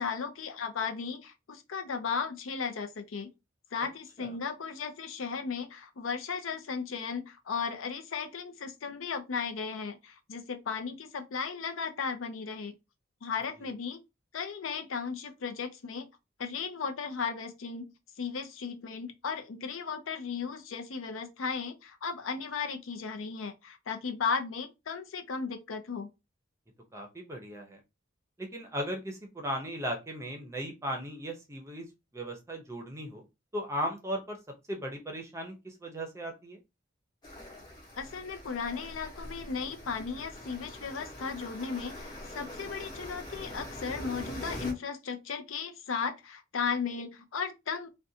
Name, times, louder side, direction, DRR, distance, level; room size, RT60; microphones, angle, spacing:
voice 1, 0.0-3.3 3.7-12.7 13.2-14.0 14.3-16.1 16.4-17.9 18.2-26.1 38.0-47.9, left 5 dB, 90° left, 0.5 m, -35 dB
voice 2, 26.9-27.8 28.4-31.9 32.1-33.3 33.5-34.4 34.7-36.6, equal, 15° right, 0.6 m, -37 dB
sound 1, 37.2-44.7, left 1 dB, 20° left, 0.8 m, -43 dB
2.5 x 2.2 x 2.7 m
head